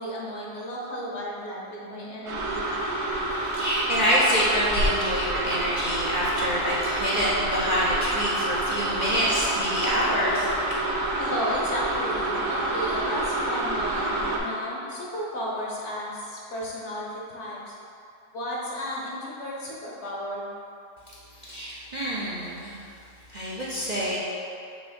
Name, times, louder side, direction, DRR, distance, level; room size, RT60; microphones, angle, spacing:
voice 1, 0.0-2.6 11.2-17.7 18.3-20.4, equal, 55° left, -4 dB, 1.1 m, -33 dB
sound 1, 2.3-14.4, right 1 dB, 85° right, 1.3 m, -28 dB
voice 2, 3.5-10.5 21.4-22.7 23.3-24.2, equal, 40° right, -8 dB, 0.7 m, -26 dB
6.2 x 3.0 x 5.1 m, 2.6 s
omnidirectional pair, 1.6 m